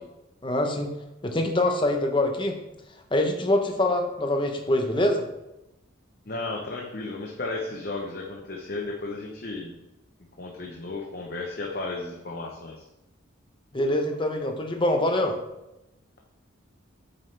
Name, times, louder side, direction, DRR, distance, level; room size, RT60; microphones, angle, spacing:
voice 1, 0.4-0.9 1.2-2.6 3.1-5.3 13.7-15.4, left 1 dB, 25° left, 4 dB, 0.9 m, -24 dB
voice 2, 6.3-9.7 10.4-12.8, left 2 dB, 50° left, 0 dB, 0.9 m, -34 dB
8.5 x 7.0 x 3.4 m, 0.94 s
head